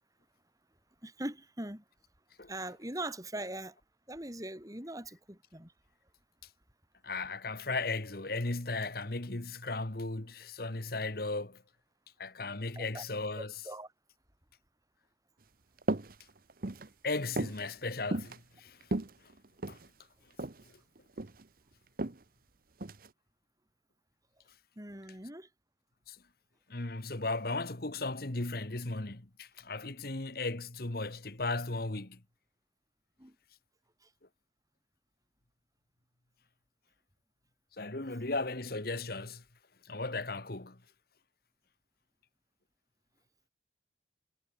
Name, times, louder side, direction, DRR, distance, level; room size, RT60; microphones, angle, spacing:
voice 1, 1.0-1.8 2.5-3.8 4.1-5.7 12.7-13.0 13.6-13.9 24.8-25.5 33.2-33.3 34.0-34.1, right 1 dB, 20° right, 6.7 m, -41 dB
voice 2, 7.0-11.6 12.2-13.5 17.0-18.8 19.7-19.8 26.1-26.2 26.7-32.2 37.8-39.4 39.8-40.8, left 3 dB, 55° left, 1.7 m, -36 dB
sound 1, 15.8-16.1 16.5-16.9 17.4-17.6 18.1-18.4 18.8-19.9 20.4-20.6 21.0-21.4 22.0-22.2 22.8-23.1, right 2 dB, 50° right, 1.1 m, -34 dB
head